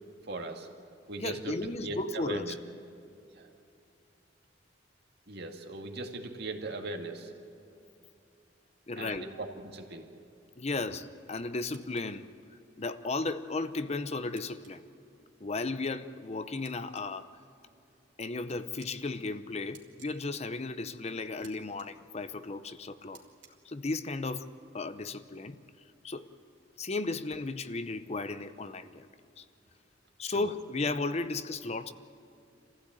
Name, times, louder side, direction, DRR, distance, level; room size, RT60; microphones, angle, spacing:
voice 1, 0.2-0.7 1.1-2.6 3.3-3.5 5.3-7.3 9.0-10.1 30.2-30.5, right 2 dB, 60° right, 2.2 m, -39 dB
voice 2, 1.2-2.5 8.9-9.3 10.6-12.3 12.8-14.8 15.4-17.3 18.2-23.2 23.6-24.5 24.7-25.6 26.0-26.3 26.8-29.1 29.4-29.5 30.2-31.9, left 3 dB, 35° left, 0.7 m, -35 dB
sound 1, 11.7-12.0 14.4-14.7 16.6-17.0 18.5-18.9 19.7-20.1 21.4-21.5 21.8-21.9 23.1-23.5, right 9 dB, 85° right, 2.9 m, -55 dB
26.5 x 15.5 x 9.0 m
head